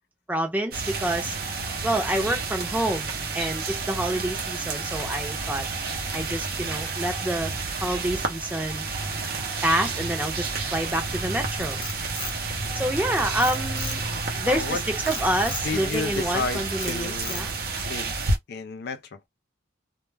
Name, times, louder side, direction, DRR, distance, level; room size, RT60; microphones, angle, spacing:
voice 1, 0.3-1.3 1.8-5.7 6.1-7.5 7.8-8.9 9.6-11.8 12.7-14.0 14.3-17.5, right 1 dB, 10° right, 0.7 m, -28 dB
sound 1, 0.7-18.4, right 3 dB, 50° right, 0.7 m, -30 dB
Frog, 11.5-13.0 13.4-14.3 15.1-15.7 16.2-16.5 16.8-17.7, left 4 dB, 30° left, 0.7 m, -37 dB
voice 2, 14.4-14.8 15.6-17.5 17.8-18.1 18.5-19.3, left 4 dB, 55° left, 0.4 m, -32 dB
2.2 x 2.1 x 3.2 m
head